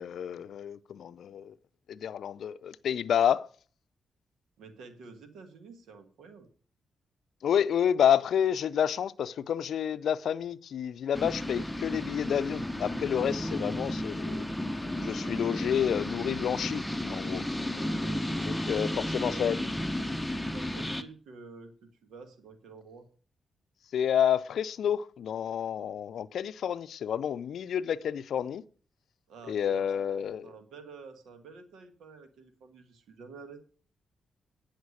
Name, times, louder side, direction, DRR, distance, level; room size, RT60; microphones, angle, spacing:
voice 1, 0.0-1.5 1.9-3.5 7.4-14.5 15.0-16.8 17.1-17.4 18.5-19.6 23.9-28.6 29.5-30.5, left 9 dB, 75° left, 0.4 m, -29 dB
voice 2, 4.6-6.5 17.4-19.0 19.3-19.4 20.3-23.1 29.3-29.9 30.4-33.6, right 4 dB, 85° right, 1.4 m, -49 dB
sound 1, 11.1-21.0, left 1 dB, 5° left, 0.8 m, -33 dB
9.5 x 6.5 x 6.4 m
supercardioid pair, 55°, 0 cm